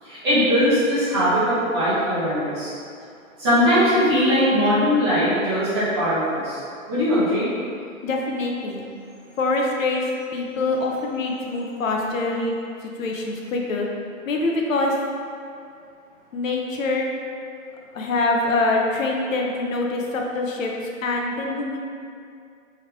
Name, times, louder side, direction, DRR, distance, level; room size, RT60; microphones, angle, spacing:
voice 1, 0.0-2.7 3.4-6.6 6.9-7.5, equal, 20° right, -12 dB, 0.9 m, -20 dB
voice 2, 8.0-8.8 9.4-10.1 10.3-12.5 12.8-13.9 14.3-15.0 16.3-17.1 17.9-20.7 21.0-21.8, left 2 dB, 70° left, 0 dB, 0.7 m, -24 dB
3.4 x 3.2 x 3.5 m, 2.4 s
hypercardioid pair, 170°, 41 cm